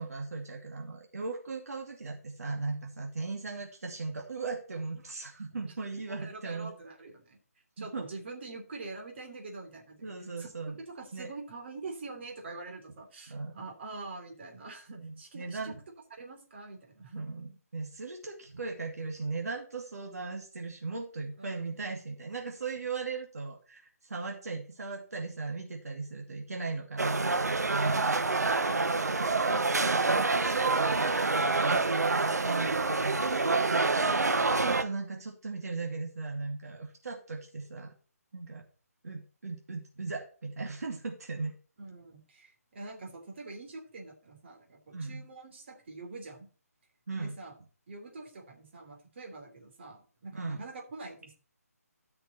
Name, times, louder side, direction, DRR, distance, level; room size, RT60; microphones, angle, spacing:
voice 1, 0.0-6.7 7.8-8.0 10.0-10.8 11.1-11.3 13.3-13.7 15.0-15.8 17.1-28.2 29.1-37.9 38.3-38.6 39.0-41.5 44.9-45.2 47.1-47.3 50.3-50.6, right 3 dB, 70° right, 1 dB, 2.5 m, -38 dB
voice 2, 6.1-7.4 7.8-10.5 10.9-15.7 16.1-17.2 21.4-21.7 27.9-28.4 34.0-34.5 41.8-46.5 47.1-47.6 47.9-51.3, right 3 dB, 45° right, 2 dB, 3.3 m, -45 dB
sound 1, 27.0-34.8, right 3 dB, 85° right, 1.0 m, -27 dB
13.5 x 6.0 x 4.2 m, 0.38 s
figure-of-eight pair, 155°, 9 cm